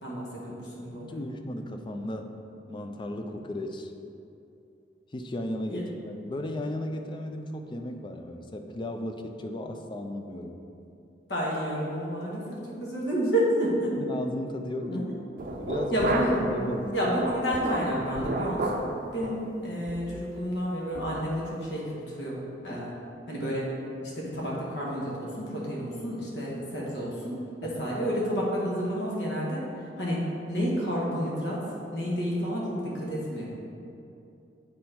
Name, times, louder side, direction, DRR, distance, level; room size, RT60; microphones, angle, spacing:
voice 1, 0.0-1.2 5.7-5.8 11.3-13.9 14.8-15.0 15.9-16.4 16.9-18.8 19.1-21.8 22.1-22.4 22.6-23.0 23.3-23.7 24.0-29.6 30.0-30.2 30.5-31.6 31.9-33.4, equal, 70° left, -5 dB, 1.6 m, -30 dB
voice 2, 1.0-2.3 2.7-3.9 5.1-10.6 14.0-15.0 15.5-16.1 16.4-17.0 27.6-27.8, left 1 dB, 25° left, 5 dB, 0.4 m, -35 dB
sound 1, 15.4-16.5 16.9-18.9 19.2-19.4 19.9-20.1 20.5-20.6 21.0-21.2, right 2 dB, 50° right, 0.5 m, -31 dB
7.5 x 4.2 x 4.4 m, 2.7 s
head